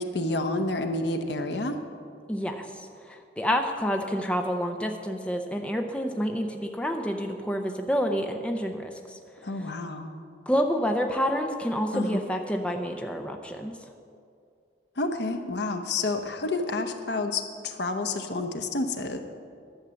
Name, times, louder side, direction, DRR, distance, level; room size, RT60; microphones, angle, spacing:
voice 1, 0.0-1.8 9.4-10.1 11.9-12.2 15.0-19.2, left 2 dB, 75° left, 6 dB, 0.9 m, -29 dB
voice 2, 2.3-2.6 3.1-9.2 10.5-13.7, equal, 5° left, 3 dB, 0.6 m, -28 dB
11.5 x 7.4 x 6.9 m, 2.4 s
head